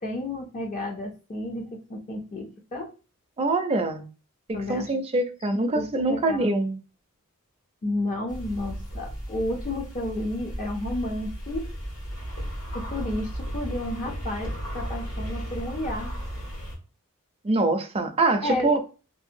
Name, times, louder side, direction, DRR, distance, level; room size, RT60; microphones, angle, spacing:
voice 1, 0.0-2.9 4.5-4.9 5.8-6.4 7.8-11.7 12.7-14.5 14.7-16.1 18.4-18.7, left 1 dB, 35° left, 0.4 m, -31 dB
voice 2, 3.4-4.0 4.5-6.8 17.4-18.8, right 2 dB, 25° right, 0.4 m, -24 dB
sound 1, 8.3-16.7, equal, 70° left, 1.4 m, -35 dB
2.6 x 2.1 x 2.5 m
head